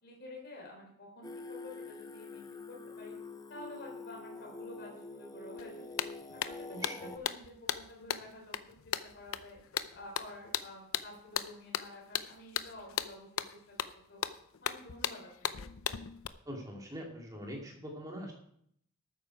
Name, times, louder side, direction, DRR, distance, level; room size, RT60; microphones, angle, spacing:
voice 1, 0.0-3.2 3.5-6.0 6.3-8.6 8.8-9.6 9.9-14.2 14.6-15.7, left 2 dB, 50° left, -1 dB, 3.6 m, -50 dB
Singing, 1.2-7.2, left 3 dB, 15° left, 0.5 m, -46 dB
sound 1, 5.6-5.7 6.0-16.3, left 9 dB, 75° left, 0.6 m, -37 dB
voice 2, 6.7-7.1 16.4-18.3, equal, 15° right, -1 dB, 2.7 m, -43 dB
13.0 x 9.1 x 4.8 m, 0.68 s
head